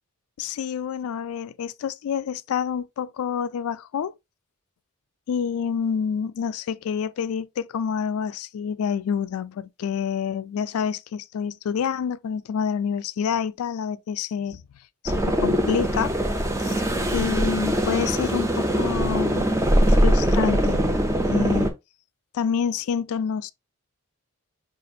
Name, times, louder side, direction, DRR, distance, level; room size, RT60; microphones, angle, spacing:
voice 1, 0.4-4.1 5.3-14.6 15.0-16.1 16.6-16.8 17.1-19.5 19.9-20.8 21.3-21.7 22.3-23.5, left 7 dB, 75° left, 0.3 m, -28 dB
sound 1, 15.1-21.7, equal, 15° right, 0.4 m, -22 dB
5.0 x 2.4 x 2.6 m
head